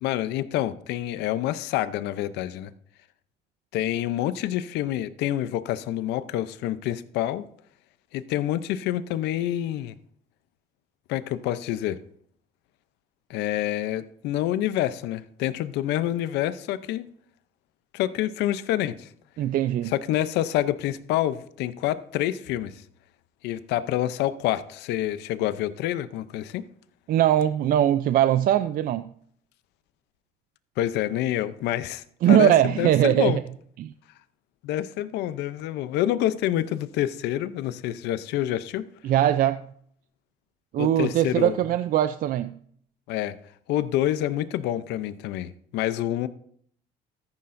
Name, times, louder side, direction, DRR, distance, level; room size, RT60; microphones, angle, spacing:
voice 1, 0.0-2.7 3.7-7.5 8.1-9.9 11.1-12.0 13.3-17.1 17.9-19.1 19.9-22.8 23.4-26.6 30.8-33.4 34.6-38.8 40.8-41.6 43.1-43.3 43.7-46.3, left 13 dB, 85° left, 0.6 m, -27 dB
voice 2, 19.4-19.9 27.1-29.1 32.2-33.3 33.8-33.9 39.0-39.6 40.7-42.6, right 11 dB, 60° right, 0.4 m, -21 dB
14.0 x 9.6 x 2.6 m
cardioid pair, 110°, 17 cm